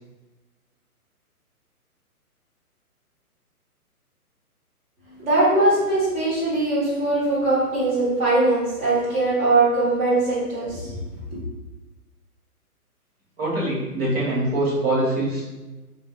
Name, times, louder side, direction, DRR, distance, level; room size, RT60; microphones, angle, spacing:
voice 1, 5.2-11.0 11.3-11.4, right 2 dB, 20° right, -8 dB, 1.1 m, -21 dB
voice 2, 13.4-15.4, right 1 dB, 40° right, -6 dB, 1.4 m, -23 dB
3.8 x 2.7 x 2.3 m, 1.1 s
figure-of-eight pair, 135°, 45 cm